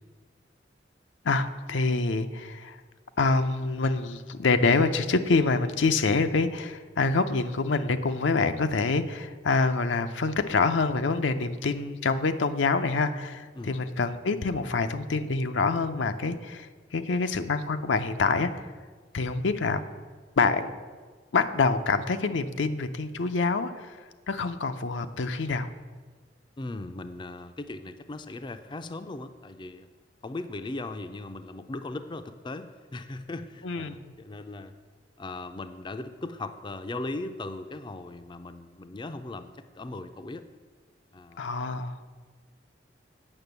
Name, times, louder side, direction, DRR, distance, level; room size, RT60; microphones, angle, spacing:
voice 1, 1.2-2.8 3.2-18.5 19.1-19.8 20.4-20.7 21.3-24.0 24.3-25.7 33.6-34.0 41.4-42.0, left 3 dB, 85° left, 9 dB, 0.6 m, -26 dB
voice 2, 26.6-29.9 30.2-34.7 35.2-40.5 41.1-41.4, left 2 dB, 25° left, 9 dB, 0.4 m, -38 dB
8.8 x 6.0 x 8.0 m, 1.5 s
head